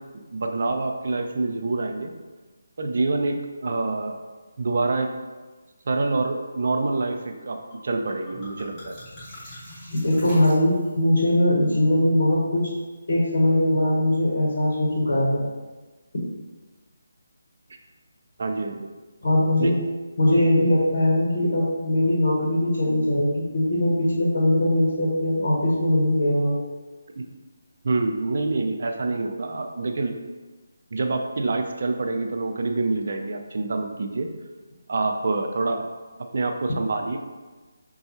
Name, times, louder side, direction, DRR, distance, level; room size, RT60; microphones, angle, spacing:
voice 1, 0.3-2.1 2.8-4.2 4.6-5.1 5.9-9.0 18.4-18.9 19.6-19.8 27.2-27.3 27.8-30.1 30.9-34.3 34.9-35.9 36.3-37.2, right 3 dB, 55° right, 4 dB, 0.4 m, -26 dB
sound 1, 7.7-11.1, equal, 15° left, 1.4 m, -43 dB
voice 2, 9.9-12.6 13.1-15.4 19.2-19.8 20.2-26.6, left 1 dB, 55° left, -4 dB, 1.1 m, -21 dB
5.2 x 2.3 x 2.8 m, 1.3 s
figure-of-eight pair, 150°, 0 cm